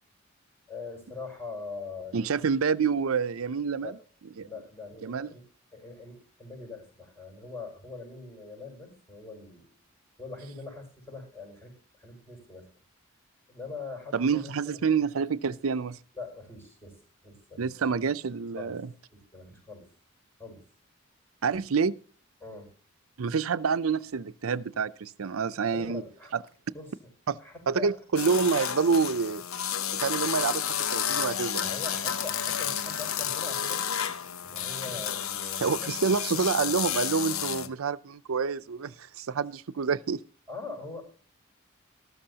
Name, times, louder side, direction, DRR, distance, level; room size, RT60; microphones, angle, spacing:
voice 1, 0.7-2.3 3.8-4.0 4.4-5.4 5.7-9.7 10.2-12.7 13.5-14.8 16.1-17.9 18.6-18.8 19.1-19.9 20.4-20.6 22.4-22.7 25.7-26.3 26.7-27.0 27.4-28.0 31.6-33.8 34.4-35.9 40.5-41.0, left 3 dB, 10° left, 6.0 m, -42 dB
voice 2, 2.1-4.0 4.4-4.5 5.0-5.3 14.1-16.0 17.6-18.9 21.4-21.9 23.2-26.0 26.3-26.4 27.3-27.4 27.7-29.4 30.0-31.7 35.6-40.2, right 5 dB, 90° right, 0.6 m, -27 dB
sound 1, 28.2-37.7, left 9 dB, 85° left, 0.9 m, -31 dB
14.0 x 13.0 x 2.8 m
head